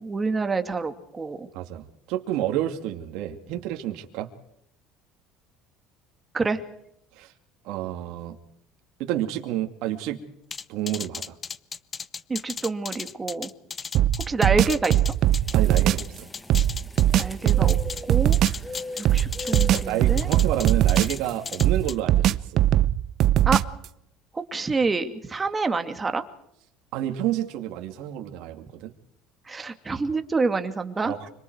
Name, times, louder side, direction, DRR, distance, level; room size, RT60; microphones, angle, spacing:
voice 1, 0.0-1.5 6.3-6.6 12.3-13.5 14.3-15.0 17.1-17.8 18.1-18.4 19.0-20.3 23.4-23.6 24.3-26.2 29.5-31.1, right 4 dB, 20° right, 7 dB, 2.4 m, -27 dB
voice 2, 1.5-4.3 7.2-7.3 7.6-8.4 9.0-10.2 10.7-11.4 15.5-16.3 19.7-22.4 26.9-28.9 31.0-31.3, right 12 dB, 75° right, 4 dB, 2.4 m, -29 dB
sound 1, 10.5-16.1 16.3-18.0 18.3-19.8 20.2-21.2 21.4-21.9, left 5 dB, 25° left, 0.8 m, -35 dB
sound 2, 13.9-16.1 16.5-18.6 19.0-21.3 21.6-23.8, right 12 dB, 55° right, 0.7 m, -21 dB
sound 3, 15.3-21.9, left 3 dB, 10° left, 1.7 m, -40 dB
26.5 x 25.0 x 4.7 m, 0.76 s
cardioid pair, 125°, 0 cm